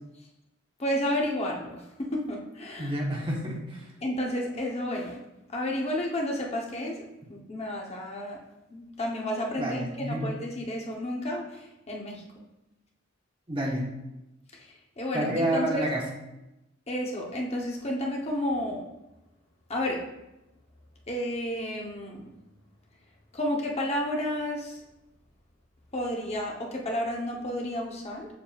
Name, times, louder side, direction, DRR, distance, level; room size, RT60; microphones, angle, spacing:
voice 1, 0.8-2.9 4.0-5.2 5.5-8.4 8.7-12.2 15.0-15.9 16.9-18.9 19.7-20.0 21.1-22.2 23.3-24.8 25.9-28.3, left 1 dB, 35° left, -1 dB, 0.9 m, -31 dB
voice 2, 2.8-3.9 9.6-10.3 13.5-13.9 15.1-16.1, right 1 dB, 25° right, -2 dB, 1.2 m, -29 dB
7.2 x 6.8 x 2.4 m, 0.93 s
head